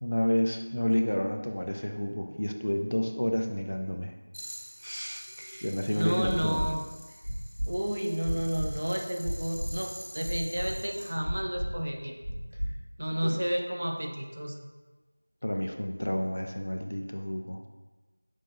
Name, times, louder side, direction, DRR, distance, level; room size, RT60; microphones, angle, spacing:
voice 1, 0.0-4.1 5.6-6.7 13.2-13.3 15.4-17.6, equal, 50° left, 5 dB, 0.4 m, -30 dB
sound 1, 4.3-11.1, equal, 75° left, 1.4 m, -47 dB
voice 2, 4.8-6.8 7.7-12.2 13.0-14.7, equal, 45° right, 2 dB, 0.4 m, -32 dB
sound 2, 6.2-6.7 7.2-7.7 8.2-8.7 9.2-9.7 10.2-10.7 11.2-11.7 12.2-12.7 13.2-13.3, equal, 80° right, 1.1 m, -32 dB
6.0 x 2.3 x 3.8 m, 1.2 s
figure-of-eight pair, 175°, 0 cm